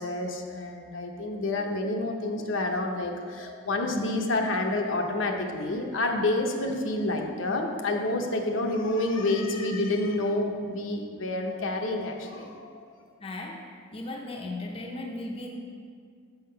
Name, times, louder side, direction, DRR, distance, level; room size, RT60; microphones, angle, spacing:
voice 1, 0.0-12.8, left 2 dB, 65° left, 2 dB, 0.7 m, -28 dB
voice 2, 13.2-15.5, left 2 dB, 25° left, 0 dB, 0.6 m, -37 dB
5.8 x 5.7 x 5.5 m, 2.2 s
head